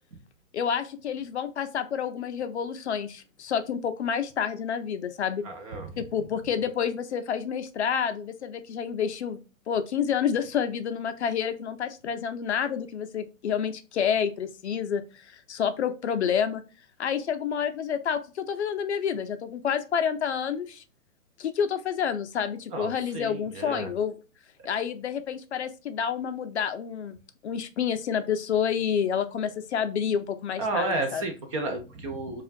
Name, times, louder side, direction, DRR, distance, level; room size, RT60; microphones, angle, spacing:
voice 1, 0.5-5.4 6.0-9.4 9.7-16.6 17.0-20.8 21.4-24.2 24.6-27.2 27.4-31.2, left 7 dB, 55° left, 9 dB, 0.6 m, -29 dB
voice 2, 5.4-5.9 22.7-23.9 30.6-32.4, right 2 dB, 25° right, 4 dB, 0.6 m, -32 dB
5.0 x 2.4 x 2.5 m, 0.33 s
hypercardioid pair, 140°, 42 cm